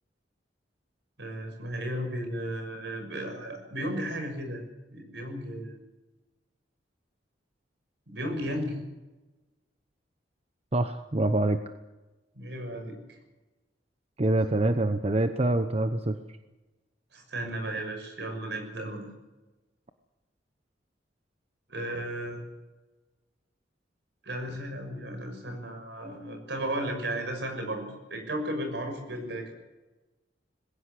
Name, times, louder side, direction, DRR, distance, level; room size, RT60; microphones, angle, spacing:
voice 1, 1.2-4.6 4.9-5.8 8.1-8.8 12.3-13.2 17.1-19.0 21.7-22.4 24.2-27.8 28.1-29.5, right 1 dB, 75° right, 5 dB, 6.5 m, -34 dB
voice 2, 10.7-11.6 14.2-16.1, right 2 dB, 35° right, 8 dB, 0.9 m, -25 dB
21.0 x 16.0 x 8.4 m, 1.1 s
head